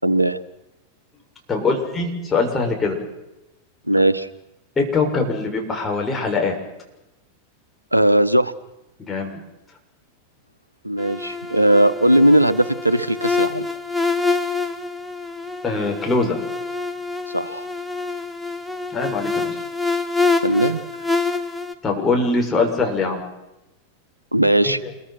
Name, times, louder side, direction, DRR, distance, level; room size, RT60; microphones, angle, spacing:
voice 1, 0.0-0.4 3.9-4.3 7.9-8.5 10.8-13.7 17.3-17.7 20.4-20.8 24.3-24.8, right 1 dB, 85° right, 15 dB, 1.2 m, -18 dB
voice 2, 1.5-3.0 4.8-6.6 9.0-9.3 15.6-16.4 18.9-19.6 21.8-23.2 24.6-24.8, left 3 dB, 15° left, 1 dB, 6.9 m, -22 dB
sound 1, 11.0-21.7, left 3 dB, ahead, 1.7 m, -26 dB
28.0 x 23.0 x 6.1 m, 0.95 s
figure-of-eight pair, 90°, 0 cm